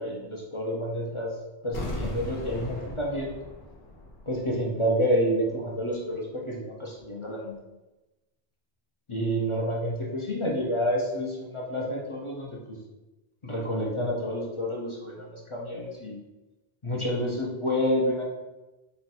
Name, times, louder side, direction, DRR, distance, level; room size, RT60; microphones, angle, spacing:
voice 1, 0.0-1.4 1.6-3.3 4.3-7.6 9.1-12.8 13.4-16.2 16.8-18.2, equal, 35° left, -2 dB, 0.5 m, -29 dB
sound 1, 1.7-4.6 4.9-5.0, left 1 dB, 60° left, 1.1 m, -37 dB
4.3 x 2.2 x 4.0 m, 1.0 s
omnidirectional pair, 1.1 m